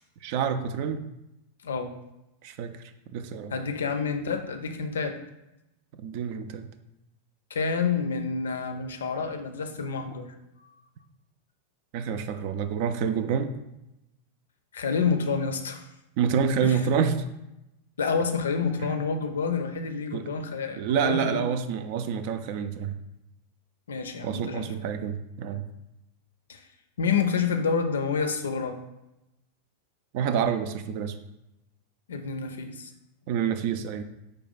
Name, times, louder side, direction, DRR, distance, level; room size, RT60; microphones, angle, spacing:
voice 1, 0.2-1.0 2.4-2.8 3.1-3.5 6.0-6.7 11.9-13.5 16.2-17.2 18.8-18.9 20.1-20.3 20.8-22.9 24.2-25.7 30.1-31.2 33.3-34.0, right 7 dB, 45° right, 10 dB, 0.3 m, -27 dB
voice 2, 3.5-5.1 7.5-10.3 14.7-15.8 16.6-16.8 18.0-21.4 23.9-24.7 26.5-26.6 27.0-28.7 32.1-32.9, left 5 dB, 65° left, 6 dB, 0.4 m, -28 dB
4.9 x 2.2 x 4.1 m, 0.91 s
figure-of-eight pair, 90°, 0 cm